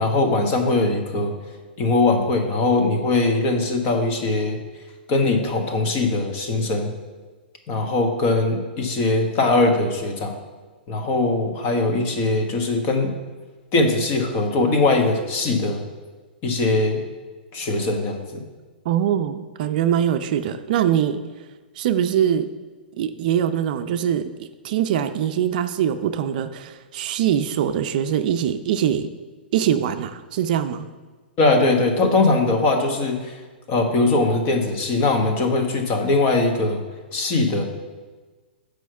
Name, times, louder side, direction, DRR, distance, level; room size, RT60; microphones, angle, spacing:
voice 1, 0.0-1.3 1.8-4.6 5.1-6.9 7.7-10.3 10.9-13.1 13.7-15.9 16.4-17.0 17.5-18.4 31.4-33.4 33.7-36.8 37.1-37.6, left 2 dB, 40° left, 4 dB, 1.3 m, -21 dB
voice 2, 18.9-21.2 21.8-22.5 22.9-29.1 29.5-30.9, right 9 dB, 55° right, 9 dB, 0.5 m, -23 dB
6.2 x 5.0 x 6.7 m, 1.3 s
hypercardioid pair, 115°, 6 cm